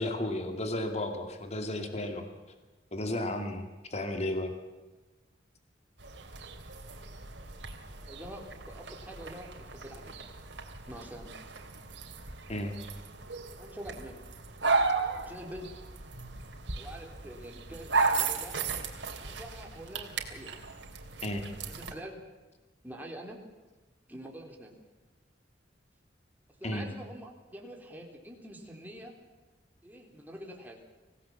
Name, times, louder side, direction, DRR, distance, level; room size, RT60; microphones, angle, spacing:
voice 1, 0.0-2.3 2.9-3.6 3.9-4.5 12.5-12.8 21.2-21.4 26.6-26.8, left 1 dB, 40° left, 5 dB, 2.4 m, -33 dB
sound 1, 6.0-21.9, right 4 dB, 75° right, 3.0 m, -35 dB
voice 2, 8.0-10.1 10.9-11.3 13.6-14.2 15.2-15.7 16.8-18.6 19.2-20.5 21.6-22.2 22.8-23.4 24.1-24.7 26.6-29.1 29.8-30.8, equal, 10° right, 1 dB, 3.7 m, -45 dB
25.0 x 17.5 x 7.2 m, 1.2 s
head